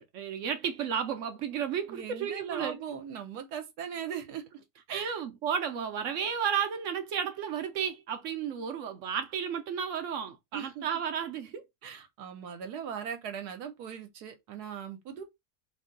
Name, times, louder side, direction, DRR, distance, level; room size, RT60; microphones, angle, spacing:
voice 1, 0.0-2.8 4.9-11.6, right 7 dB, 65° right, 0.8 m, -33 dB
voice 2, 1.9-4.4 4.9-5.1 10.5-10.9 11.8-15.2, right 8 dB, 80° right, 1.3 m, -39 dB
2.9 x 2.6 x 3.7 m
omnidirectional pair, 1.7 m